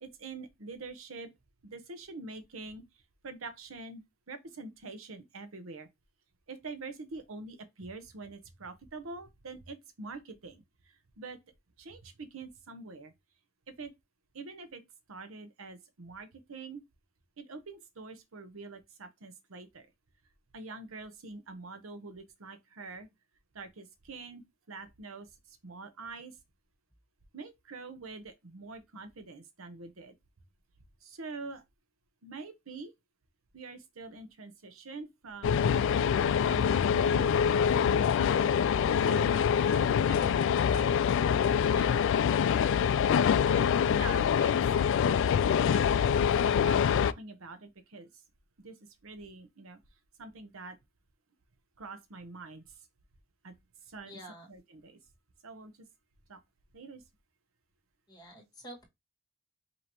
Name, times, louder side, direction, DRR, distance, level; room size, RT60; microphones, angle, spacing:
voice 1, 0.0-1.3 1.7-2.8 3.2-4.0 4.3-5.9 6.5-10.5 11.2-11.4 11.9-13.1 13.8-13.9 14.4-14.8 15.1-16.8 17.4-19.8 20.5-23.1 23.6-24.4 24.7-25.3 25.6-26.3 27.3-30.1 31.2-31.6 32.2-32.9 33.5-36.1 36.5-38.5 39.1-39.5 39.7-40.4 40.7-40.9 43.5-43.6 43.9-44.9 45.7-45.9 46.4-48.1 48.6-48.7 49.0-49.8 50.2-50.7 51.8-52.6 53.4-53.5 53.9-54.2 54.5-54.9 55.4-55.7 56.3-56.4 56.7-57.0, right 3 dB, 75° right, 0.8 m, -45 dB
sound 1, 35.4-47.1, left 7 dB, 65° left, 0.3 m, -25 dB
voice 2, 41.7-42.1 54.1-54.5 58.1-58.9, equal, 20° left, 1.8 m, -47 dB
5.3 x 2.8 x 2.9 m
head